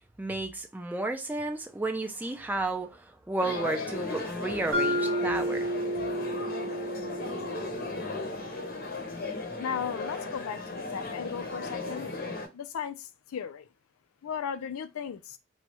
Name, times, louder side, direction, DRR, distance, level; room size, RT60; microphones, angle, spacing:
voice 1, 0.2-5.7, right 2 dB, 10° right, 0.4 m, -32 dB
sound 1, 3.4-12.5, left 3 dB, 45° left, 0.7 m, -36 dB
Mallet percussion, 4.7-8.8, equal, 65° right, 0.8 m, -32 dB
voice 2, 9.6-12.1 12.5-13.7 14.2-15.4, left 7 dB, 85° left, 0.4 m, -36 dB
3.0 x 2.3 x 2.9 m
head